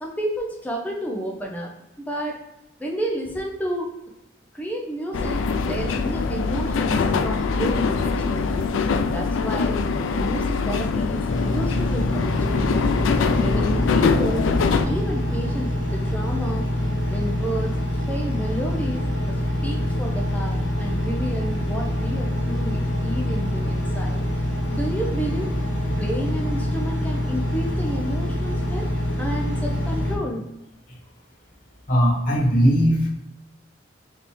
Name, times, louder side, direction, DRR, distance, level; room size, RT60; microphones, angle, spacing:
voice 1, 0.0-1.7 2.0-2.4 2.8-3.9 4.5-8.6 9.1-9.8 10.1-13.0 13.4-16.7 17.1-19.0 19.3-24.2 24.7-25.5 26.0-28.9 29.2-30.4, right 1 dB, 10° left, -1 dB, 0.5 m, -31 dB
sound 1, 5.1-14.9, left 4 dB, 90° left, 0.4 m, -23 dB
Engine, 11.3-30.1, left 1 dB, 75° left, 1.0 m, -25 dB
voice 2, 31.9-33.1, equal, 45° left, -4 dB, 1.1 m, -18 dB
3.5 x 2.8 x 4.2 m, 0.95 s
head